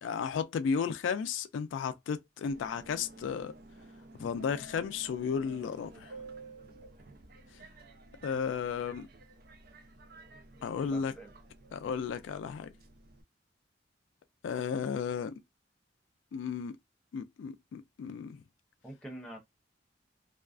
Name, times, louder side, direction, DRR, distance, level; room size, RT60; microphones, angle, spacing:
voice 1, 0.0-3.5 4.2-6.1 8.2-9.1 10.6-11.1 11.7-12.7 14.4-15.3 16.3-16.7 17.1-18.4, left 6 dB, 85° left, 0.3 m, -34 dB
Subway metro underground, 2.5-13.2, right 2 dB, 55° right, 0.4 m, -52 dB
voice 2, 10.7-11.3 18.8-19.4, right 1 dB, 5° left, 0.7 m, -46 dB
2.3 x 2.3 x 2.3 m
head